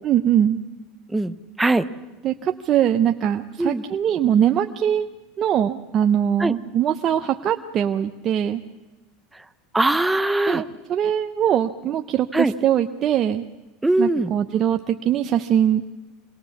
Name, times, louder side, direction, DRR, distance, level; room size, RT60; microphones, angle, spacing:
voice 1, 0.0-0.6 2.2-5.1 5.4-8.6 10.5-13.5 14.0-15.9, right 10 dB, 40° right, 6 dB, 0.8 m, -21 dB
voice 2, 1.1-1.9 3.6-3.8 6.4-6.5 9.7-10.6 12.3-12.5 13.8-14.3, right 2 dB, 10° right, 11 dB, 1.0 m, -21 dB
26.0 x 19.0 x 7.3 m, 1.1 s
supercardioid pair, 110°, 0 cm